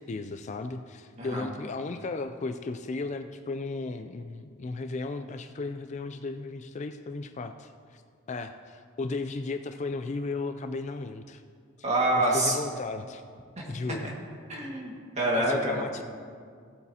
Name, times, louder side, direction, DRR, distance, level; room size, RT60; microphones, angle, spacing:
voice 1, 0.0-8.0 8.3-11.4 12.2-13.2 13.6-14.1 15.3-16.0, left 3 dB, 35° left, 8 dB, 0.3 m, -35 dB
voice 2, 11.8-12.6 13.6-13.7 14.5-15.9, right 1 dB, 30° right, -2 dB, 1.9 m, -26 dB
17.0 x 8.1 x 2.8 m, 2.1 s
head